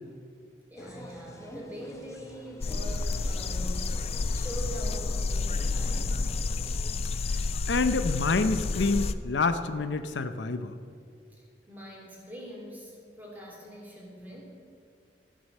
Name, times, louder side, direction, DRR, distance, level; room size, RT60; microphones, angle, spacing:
voice 1, 0.7-3.9 4.3-6.3 11.7-14.4, equal, 10° right, -4 dB, 2.9 m, -43 dB
sound 1, 0.8-6.9, equal, 15° left, 1.1 m, -46 dB
sound 2, 2.6-9.1, left 3 dB, 35° left, 0.3 m, -30 dB
voice 2, 7.4-10.7, left 3 dB, 90° left, 10 dB, 0.6 m, -28 dB
14.5 x 6.3 x 6.6 m, 2.4 s
head